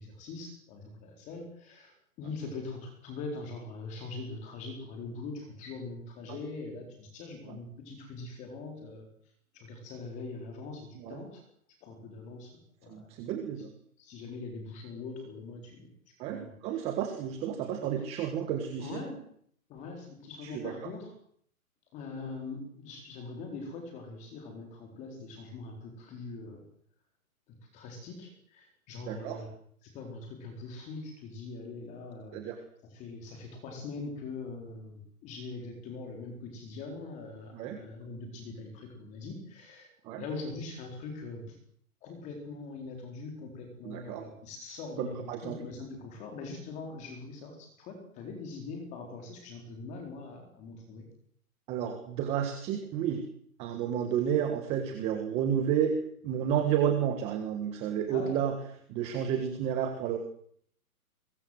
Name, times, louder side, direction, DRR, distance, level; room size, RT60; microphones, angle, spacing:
voice 1, 0.0-9.1 9.5-11.4 11.8-13.4 14.0-15.9 16.2-16.9 17.8-17.9 18.8-19.2 19.7-21.1 21.9-26.6 27.7-29.5 29.8-32.4 32.9-39.9 40.2-41.6 42.0-51.1 56.5-56.6 58.1-58.3, left 3 dB, 15° left, 3 dB, 4.3 m, -42 dB
voice 2, 12.9-13.7 16.2-19.0 20.4-20.7 29.1-29.4 32.3-32.6 37.5-37.8 40.0-40.2 43.8-44.2 45.0-45.6 51.7-53.2 53.6-58.5 58.9-60.2, right 9 dB, 15° right, 6 dB, 1.6 m, -31 dB
22.5 x 22.5 x 8.0 m, 0.63 s
hypercardioid pair, 165°, 44 cm